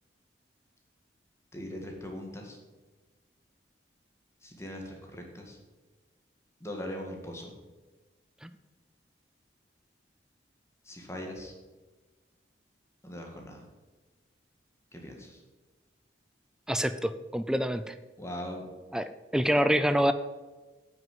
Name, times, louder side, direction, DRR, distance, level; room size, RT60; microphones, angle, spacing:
voice 1, 1.5-2.6 4.4-5.6 6.6-7.5 10.8-11.5 13.0-13.6 14.9-15.4 18.2-18.6, left 1 dB, 15° left, 1 dB, 1.9 m, -40 dB
voice 2, 16.7-18.0 18.9-20.1, equal, 5° right, 11 dB, 0.3 m, -26 dB
9.2 x 6.2 x 7.6 m, 1.3 s
head